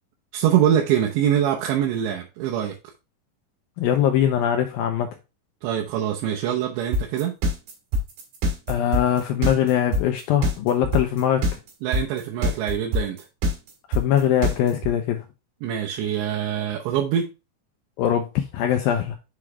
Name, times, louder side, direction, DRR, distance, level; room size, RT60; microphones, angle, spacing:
voice 1, 0.3-2.8 5.6-7.4 11.8-13.3 15.6-17.3, right 10 dB, 90° right, 0 dB, 3.2 m, -24 dB
voice 2, 3.8-5.1 8.7-11.5 13.9-15.2 18.0-19.2, left 10 dB, 85° left, 5 dB, 2.1 m, -22 dB
sound 1, 6.9-14.9, equal, 65° right, 4.1 m, -23 dB
7.4 x 5.0 x 3.4 m, 0.27 s
omnidirectional pair, 5.0 m